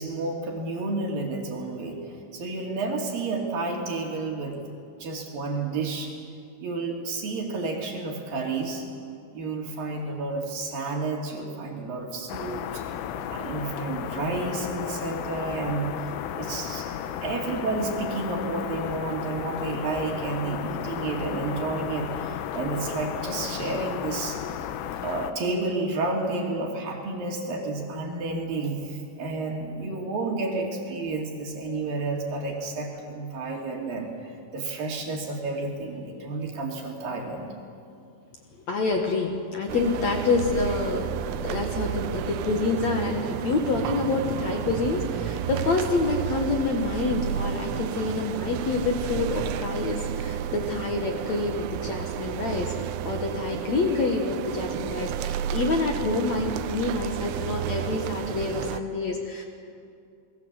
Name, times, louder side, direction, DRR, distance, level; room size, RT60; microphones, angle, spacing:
voice 1, 0.0-2.0 2.3-4.6 5.0-6.1 6.6-8.8 9.3-12.8 13.3-15.9 16.4-16.9 17.2-24.4 25.0-37.5, right 3 dB, 50° right, 1 dB, 4.0 m, -31 dB
sound 1, 12.3-25.3, left 9 dB, 90° left, 3.7 m, -34 dB
voice 2, 38.7-52.7 53.0-59.4, left 3 dB, 65° left, 3 dB, 1.7 m, -27 dB
sound 2, 39.7-58.8, right 11 dB, 90° right, 3.4 m, -32 dB
28.5 x 20.5 x 8.1 m, 2.4 s
omnidirectional pair, 5.6 m